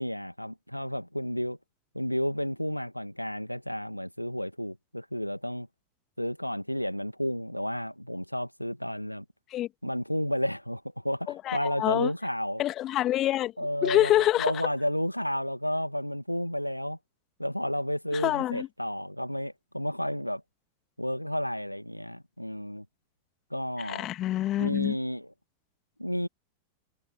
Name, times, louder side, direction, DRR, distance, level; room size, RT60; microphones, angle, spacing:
voice 1, 0.0-1.6 1.9-5.7 6.2-9.2 9.8-12.6 13.6-17.0 17.4-20.4 21.0-22.9 23.5-24.1 24.6-25.3 26.0-26.3, equal, 90° left, 2.1 m, -31 dB
voice 2, 11.3-12.1 12.6-13.5 13.8-14.5 18.1-18.7 23.9-25.0, left 14 dB, 35° left, 2.6 m, -26 dB
figure-of-eight pair, 90°, 0 cm